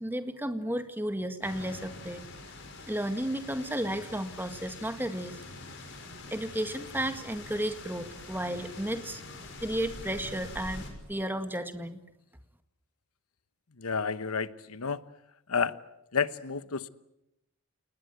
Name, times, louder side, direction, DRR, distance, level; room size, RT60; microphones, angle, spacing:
voice 1, 0.0-2.2 2.9-5.4 6.3-9.2 9.6-12.0, right 1 dB, 10° right, 8 dB, 1.8 m, -33 dB
sound 1, 1.4-10.9, left 2 dB, 55° left, 6.2 m, -45 dB
voice 2, 13.8-15.0 15.5-15.8 16.1-16.9, left 5 dB, 90° left, 14 dB, 1.1 m, -30 dB
29.5 x 20.0 x 9.3 m, 0.86 s
head